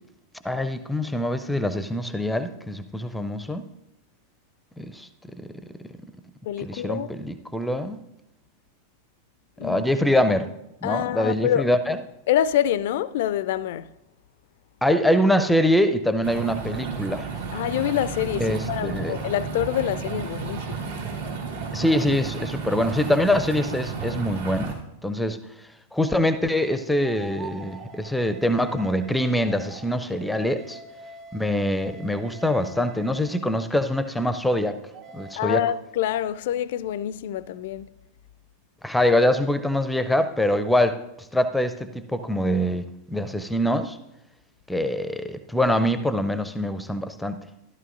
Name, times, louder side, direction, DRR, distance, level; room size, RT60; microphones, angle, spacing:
voice 1, 0.4-3.7 4.8-5.1 5.4-5.5 6.6-8.0 9.6-10.5 10.8-12.0 14.8-17.3 18.4-19.1 21.7-24.8 25.0-25.4 25.9-30.8 31.3-34.8 35.1-35.6 38.8-41.0 41.3-44.0 44.7-47.4, left 1 dB, 5° left, 0.5 m, -24 dB
voice 2, 6.4-7.1 9.6-9.9 10.8-11.7 12.3-13.9 17.5-20.9 35.4-37.9, left 11 dB, 55° left, 0.4 m, -26 dB
sound 1, 16.2-24.7, right 5 dB, 65° right, 2.2 m, -32 dB
sound 2, 27.0-33.7 34.6-35.3, right 3 dB, 35° right, 1.3 m, -44 dB
14.0 x 12.0 x 2.5 m
figure-of-eight pair, 90°, 0 cm